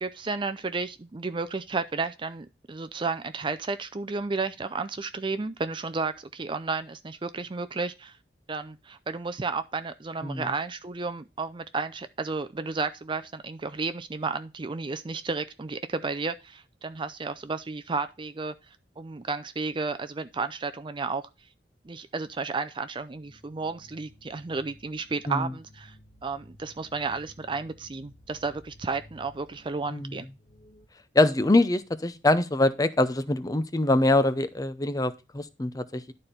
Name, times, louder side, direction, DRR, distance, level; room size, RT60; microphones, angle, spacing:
voice 1, 0.0-8.2 8.5-18.5 19.0-21.3 21.8-25.9 26.2-30.3, right 4 dB, 30° right, 0.5 m, -32 dB
sound 1, 23.1-30.9, equal, 85° left, 2.0 m, -55 dB
voice 2, 31.1-36.1, left 2 dB, 20° left, 0.7 m, -24 dB
12.0 x 4.4 x 5.1 m
head